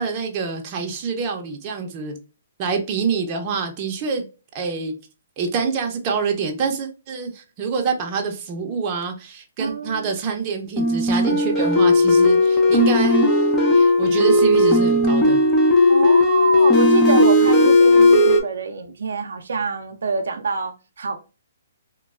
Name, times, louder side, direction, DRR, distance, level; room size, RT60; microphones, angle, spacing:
voice 1, 0.0-2.1 2.6-4.3 4.5-4.9 5.4-13.4 13.7-15.4, right 5 dB, 30° right, 0.7 m, -26 dB
voice 2, 9.6-10.1 15.9-21.2, right 4 dB, 80° right, 0.5 m, -25 dB
sound 1, 10.8-18.4, left 2 dB, 15° left, 0.6 m, -16 dB
3.0 x 2.2 x 2.3 m
hypercardioid pair, 150°, 0 cm